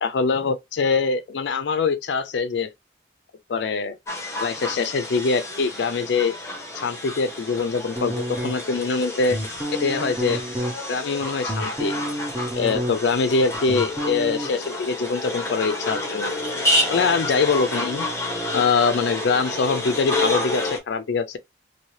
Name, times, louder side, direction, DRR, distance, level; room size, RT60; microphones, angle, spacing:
voice 1, 0.0-2.7 3.5-4.0 4.4-6.3 6.7-9.4 9.8-10.4 10.9-11.9 12.6-16.3 16.9-18.1 18.5-21.4, left 4 dB, 65° left, 0.4 m, -23 dB
sound 1, 4.1-20.8, left 1 dB, 15° left, 0.9 m, -29 dB
sound 2, 8.0-8.8 9.3-10.7 11.2-13.2 13.4-14.5, equal, 15° right, 0.7 m, -29 dB
2.8 x 2.6 x 3.1 m
head